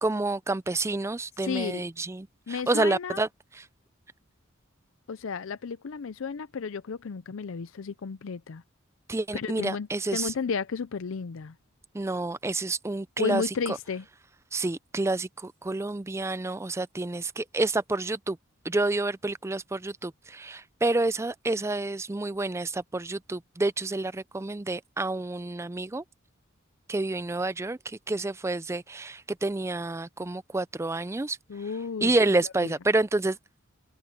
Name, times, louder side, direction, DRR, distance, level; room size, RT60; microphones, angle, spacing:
voice 1, 0.0-3.3 9.1-10.3 11.9-13.4 14.5-18.4 18.7-26.0 26.9-27.8 28.1-31.4 32.0-33.4, right 2 dB, 15° right, 0.4 m, -29 dB
voice 2, 1.4-1.9 2.5-3.2 5.1-8.6 9.3-11.5 13.2-14.1 31.5-32.1 32.4-32.7, left 5 dB, 70° left, 0.5 m, -33 dB
head